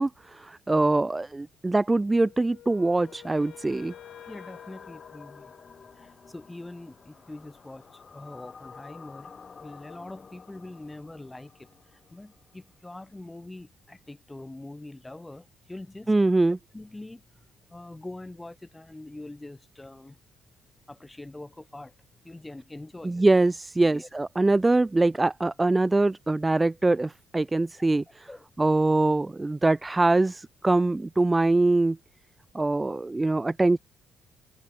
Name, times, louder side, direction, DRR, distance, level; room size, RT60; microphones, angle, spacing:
voice 1, 0.0-3.9 16.1-16.6 23.0-28.3 28.6-32.0 32.5-33.8, right 2 dB, 15° right, 0.3 m, -23 dB
Wind instrument woodwind instrument, 2.2-6.1, left 12 dB, 70° left, 1.0 m, -50 dB
sound 1, 2.7-12.8, left 5 dB, 30° left, 7.4 m, -50 dB
voice 2, 4.2-5.5 5.9-11.7 12.1-16.2 16.7-17.2 17.7-20.2 20.9-21.9 22.2-23.2 23.8-24.1 28.3-28.5, left 2 dB, 10° left, 1.1 m, -43 dB
cardioid pair, 145°, 0 cm